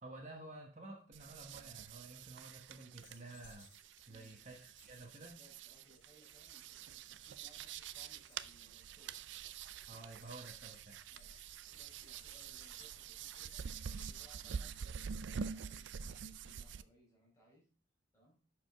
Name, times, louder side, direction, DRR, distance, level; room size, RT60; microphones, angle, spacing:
voice 1, 0.0-3.7 4.1-5.4 9.9-11.0, right 2 dB, 35° right, 1 dB, 1.3 m, -52 dB
sound 1, 1.1-16.8, right 6 dB, 65° right, 0.4 m, -47 dB
sound 2, 2.6-14.1, left 5 dB, 75° left, 2.0 m, -67 dB
voice 2, 4.1-4.4 5.1-9.2 11.1-11.4 11.8-13.6 14.1-17.7 18.1-18.4, right 1 dB, 15° left, -4 dB, 4.1 m, -67 dB
11.0 x 5.1 x 3.6 m, 0.37 s
head